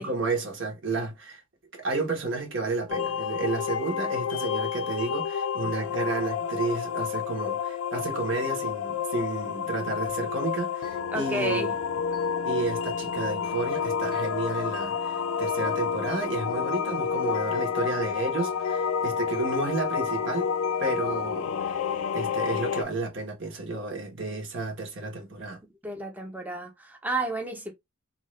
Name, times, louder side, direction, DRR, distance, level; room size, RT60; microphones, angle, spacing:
voice 1, 0.0-1.4 1.7-11.7 12.4-20.5 20.8-21.8 22.1-25.6, right 3 dB, 60° right, 1.1 m, -31 dB
sound 1, 2.9-22.8, left 7 dB, 80° left, 0.4 m, -29 dB
voice 2, 11.1-11.7 25.8-27.7, right 2 dB, 10° right, 0.6 m, -31 dB
2.7 x 2.4 x 3.1 m
head